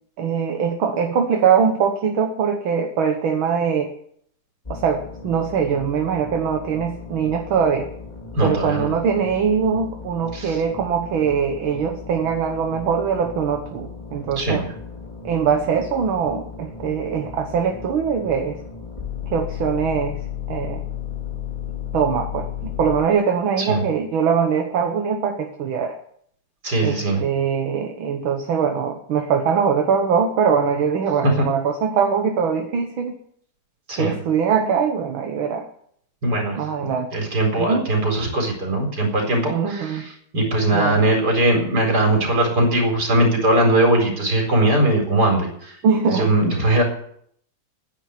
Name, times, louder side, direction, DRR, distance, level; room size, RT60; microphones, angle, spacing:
voice 1, 0.2-3.9 4.7-7.9 8.4-14.7 15.2-18.6 19.3-20.2 20.5-20.8 21.9-25.9 26.8-33.2 34.0-35.7 36.6-37.1 37.5-37.9 39.5-40.0 40.7-40.9 45.8-46.3, right 6 dB, 70° right, 4 dB, 2.1 m, -22 dB
sound 1, 4.6-23.0, left 8 dB, 20° left, 3.8 m, -35 dB
voice 2, 8.3-8.9 10.3-10.6 14.4-14.7 23.6-23.8 26.6-27.2 31.2-31.5 33.9-34.2 36.2-45.7 46.1-46.8, right 1 dB, 45° right, 2 dB, 4.8 m, -20 dB
10.5 x 10.0 x 9.5 m, 0.65 s
omnidirectional pair, 2.3 m